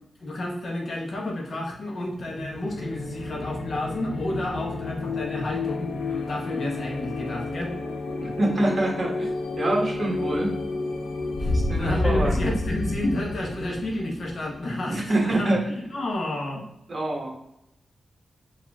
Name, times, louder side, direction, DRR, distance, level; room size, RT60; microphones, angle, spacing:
voice 1, 0.2-7.7 11.4-16.7, left 1 dB, 55° left, 0 dB, 1.1 m, -30 dB
sound 1, 2.1-15.6, left 2 dB, 80° left, 0.5 m, -30 dB
voice 2, 8.2-9.3 9.6-10.5 11.5-12.4 14.9-15.6 16.9-17.3, right 1 dB, 40° right, -1 dB, 1.3 m, -25 dB
4.8 x 2.7 x 3.5 m, 0.79 s
wide cardioid pair, 90°, 0 cm